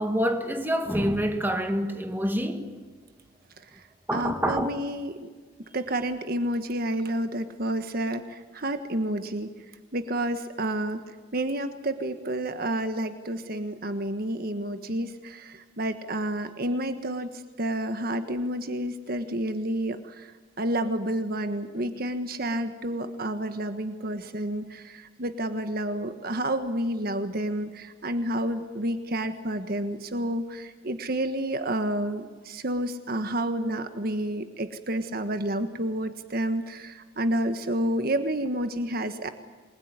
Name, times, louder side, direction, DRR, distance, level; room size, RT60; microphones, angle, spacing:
voice 1, 0.0-2.7 4.1-4.7, equal, 10° right, 1.9 m, -27 dB
voice 2, 4.1-5.1 5.7-9.5 9.9-11.0 11.3-17.3 17.6-20.3 20.6-39.3, right 1 dB, 50° right, 1.4 m, -30 dB
28.0 x 21.0 x 9.7 m
head